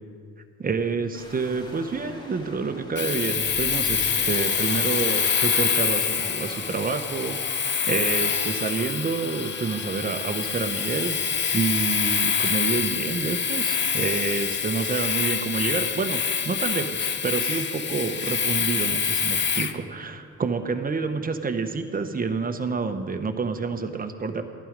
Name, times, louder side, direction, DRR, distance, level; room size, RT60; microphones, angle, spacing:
voice 1, 0.6-11.2 11.5-16.2 16.4-24.4, right 4 dB, 30° right, 7 dB, 1.0 m, -28 dB
sound 1, 1.1-13.2, equal, 15° left, 2.5 m, -44 dB
Domestic sounds home sounds, 3.0-19.8, left 6 dB, 40° left, 0.7 m, -26 dB
13.5 x 11.0 x 5.2 m, 2.2 s
cardioid pair, 90°, 30 cm